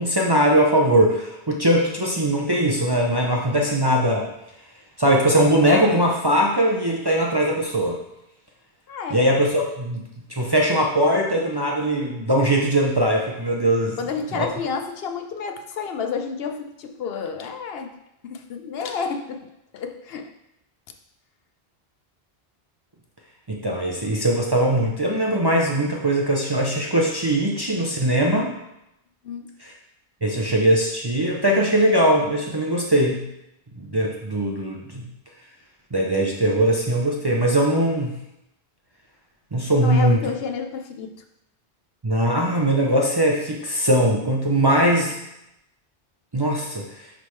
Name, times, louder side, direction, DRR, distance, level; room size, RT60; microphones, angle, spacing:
voice 1, 0.0-4.3 5.0-8.0 9.1-10.0 10.3-14.0 14.3-14.5 23.5-28.5 29.6-29.7 30.2-33.2 33.8-35.0 35.9-38.2 39.5-40.2 42.0-45.2 46.3-47.1, right 1 dB, 30° right, -2 dB, 0.6 m, -20 dB
voice 2, 8.9-9.3 14.0-18.0 18.2-19.4 19.7-20.3 29.2-29.5 39.8-41.1, left 5 dB, 70° left, 5 dB, 0.9 m, -30 dB
9.9 x 3.5 x 3.2 m, 0.85 s
omnidirectional pair, 1.1 m